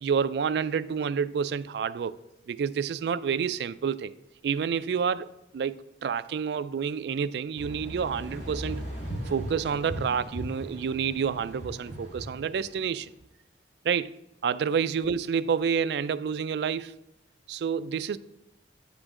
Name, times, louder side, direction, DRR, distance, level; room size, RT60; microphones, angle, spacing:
voice 1, 0.0-2.2 2.5-4.1 4.4-5.3 5.5-8.8 9.3-13.1 13.8-14.1 14.4-16.9 17.5-18.2, right 6 dB, 65° right, 0.3 m, -29 dB
sound 1, 7.6-13.0, right 1 dB, 80° left, 1.9 m, -38 dB
9.4 x 5.1 x 3.6 m
head